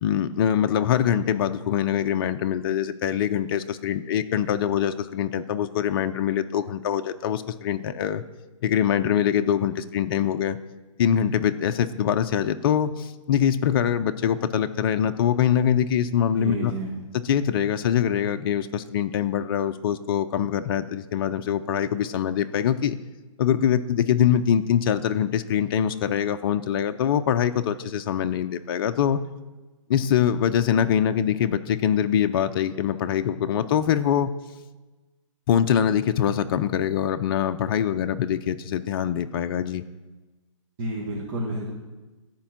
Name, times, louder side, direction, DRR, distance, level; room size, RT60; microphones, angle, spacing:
voice 1, 0.0-8.2 8.6-10.6 11.0-16.7 17.2-23.0 23.4-29.2 29.9-34.3 35.5-39.8, left 9 dB, 45° left, 8 dB, 0.5 m, -23 dB
voice 2, 16.3-16.9 40.8-41.7, right 2 dB, 45° right, -4 dB, 1.9 m, -30 dB
13.5 x 4.4 x 6.0 m, 1.2 s
hypercardioid pair, 145°, 17 cm